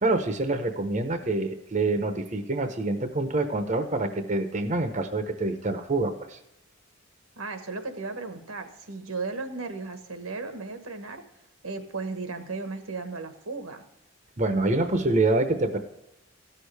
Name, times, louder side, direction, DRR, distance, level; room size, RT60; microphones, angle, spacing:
voice 1, 0.0-6.4 14.4-15.8, right 2 dB, 35° right, 7 dB, 0.8 m, -26 dB
voice 2, 7.4-11.2 11.6-13.8, right 3 dB, 85° right, 7 dB, 1.3 m, -35 dB
15.5 x 6.5 x 3.3 m, 0.89 s
head